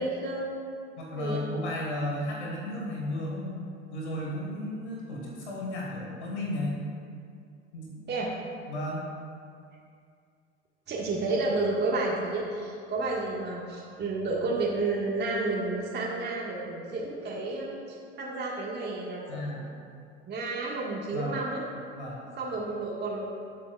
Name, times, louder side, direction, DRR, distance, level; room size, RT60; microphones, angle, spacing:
voice 1, 0.0-1.4 8.1-8.3 10.9-19.6 20.3-21.6 22.4-23.3, right 2 dB, 30° right, -4 dB, 1.6 m, -31 dB
voice 2, 1.0-6.8 7.7-8.0 8.7-9.1 19.3-19.6 21.1-21.4 21.9-22.2, left 1 dB, 75° left, -3 dB, 1.8 m, -34 dB
18.0 x 8.1 x 2.4 m, 2.3 s
figure-of-eight pair, 65°, 34 cm